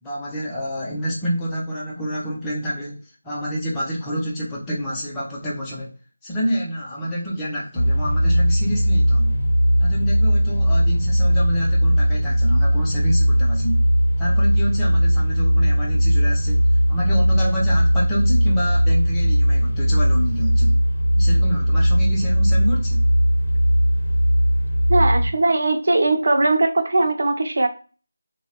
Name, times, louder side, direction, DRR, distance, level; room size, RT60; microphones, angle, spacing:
voice 1, 0.0-5.9 6.2-9.4 9.8-13.8 14.2-20.8 21.2-23.0, equal, 10° left, -6 dB, 0.5 m, -28 dB
sound 1, 7.8-25.3, equal, 55° left, 0.7 m, -18 dB
voice 2, 24.9-27.7, right 2 dB, 60° right, 6 dB, 0.4 m, -19 dB
2.7 x 2.0 x 2.4 m, 0.37 s
figure-of-eight pair, 165°, 0 cm